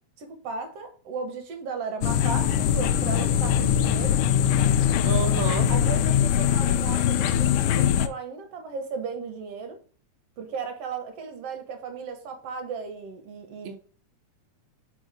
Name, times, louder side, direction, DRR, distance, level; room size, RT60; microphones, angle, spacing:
voice 1, 0.2-4.2 5.7-9.8 10.4-13.8, right 5 dB, 60° right, 2.0 m, -35 dB
sound 1, 2.0-8.1, left 9 dB, 90° left, 2.1 m, -22 dB
voice 2, 5.0-5.7, right 6 dB, 85° right, 1.1 m, -29 dB
5.0 x 3.9 x 4.8 m
omnidirectional pair, 3.5 m